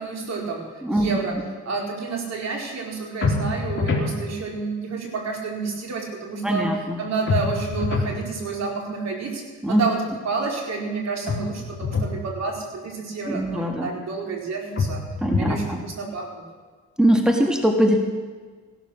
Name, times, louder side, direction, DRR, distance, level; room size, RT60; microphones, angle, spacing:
voice 1, 0.0-1.4 1.6-6.7 7.0-9.4 9.7-15.0 15.4-16.4, right 4 dB, 60° right, 0 dB, 4.3 m, -29 dB
voice 2, 0.8-1.4 6.4-7.0 9.6-9.8 13.3-13.9 15.2-15.8 17.0-18.0, equal, ahead, 3 dB, 1.8 m, -21 dB
sound 1, 3.2-4.1 7.3-8.2 11.3-12.2 14.8-15.7, left 4 dB, 40° left, 3.7 m, -25 dB
16.5 x 12.5 x 6.4 m, 1.5 s
cardioid pair, 90°, 30 cm